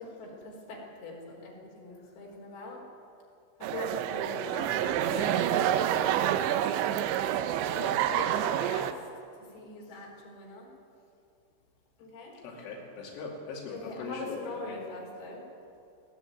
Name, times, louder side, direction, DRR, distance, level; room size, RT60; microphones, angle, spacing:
voice 1, 0.0-2.8 3.6-4.8 5.1-6.1 7.6-8.9 9.4-10.7 12.0-12.4 13.7-15.4, left 2 dB, 55° left, -2 dB, 6.0 m, -42 dB
sound 1, 3.6-8.9, right 11 dB, 80° right, 3.0 m, -28 dB
voice 2, 4.6-5.5 7.7-8.6 9.8-10.0 12.4-14.9, left 4 dB, 90° left, -2 dB, 5.0 m, -42 dB
20.0 x 16.5 x 9.3 m, 2.5 s
omnidirectional pair, 5.3 m